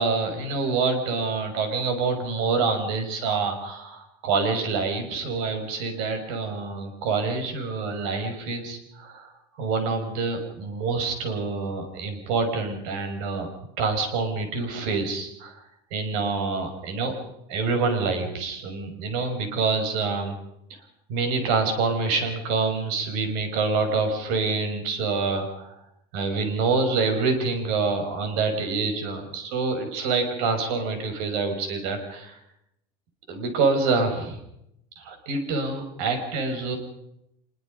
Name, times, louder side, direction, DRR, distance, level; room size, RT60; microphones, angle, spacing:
voice 1, 0.0-9.3 9.6-13.5 13.8-15.6 15.9-17.1 17.5-20.4 21.1-25.8 26.1-32.4 33.3-34.4 35.0-36.8, right 4 dB, 55° right, 6 dB, 5.9 m, -26 dB
25.5 x 22.5 x 5.4 m, 0.79 s
cardioid pair, 180°, 12 cm